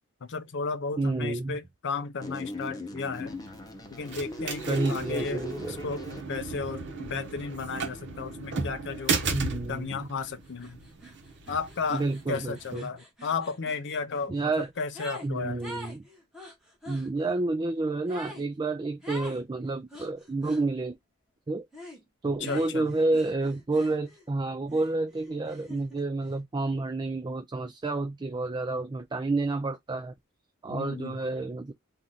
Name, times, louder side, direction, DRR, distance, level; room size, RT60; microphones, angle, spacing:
voice 1, 0.2-3.3 3.9-6.0 6.3-9.2 9.7-10.8 11.5-15.7 22.4-22.9 30.7-31.2, left 4 dB, 55° left, 0.6 m, -34 dB
voice 2, 1.0-1.6 4.7-5.8 9.3-10.1 11.9-12.9 14.3-14.7 15.2-16.0 16.9-21.0 21.5-21.7 22.2-30.1 30.6-31.7, right 2 dB, 20° right, 0.4 m, -29 dB
sound 1, 2.2-6.2, left 1 dB, 15° left, 0.7 m, -38 dB
sound 2, 3.1-12.7, right 4 dB, 55° right, 1.1 m, -36 dB
sound 3, 10.2-10.3 10.6-15.3 15.6-17.1 18.1-18.5 19.0-19.4 19.9-20.6 21.7-22.0 22.4-24.3 24.7-26.1, equal, 5° right, 1.3 m, -45 dB
3.1 x 2.5 x 3.9 m
head